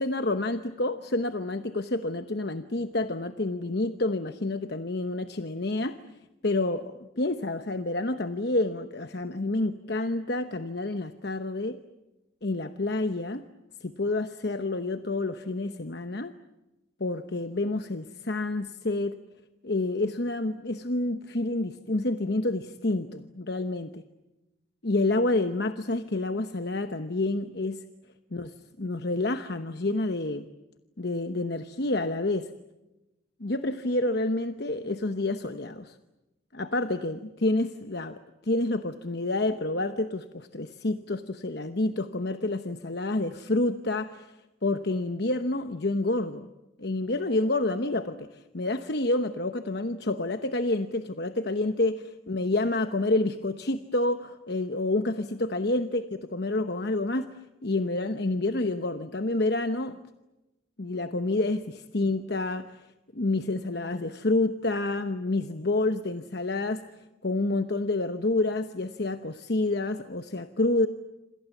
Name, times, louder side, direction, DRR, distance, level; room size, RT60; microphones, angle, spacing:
voice 1, 0.0-6.0 6.4-11.8 12.4-13.5 13.8-16.3 17.0-19.2 19.6-24.0 24.8-27.8 28.3-30.5 31.0-32.5 33.4-35.9 36.5-44.3 44.6-46.5 46.8-52.0 52.3-56.0 56.3-57.3 57.6-60.0 60.8-62.7 63.1-66.9 67.2-70.9, left 2 dB, 55° left, 9 dB, 1.0 m, -28 dB
27.5 x 26.5 x 7.3 m, 1.0 s
head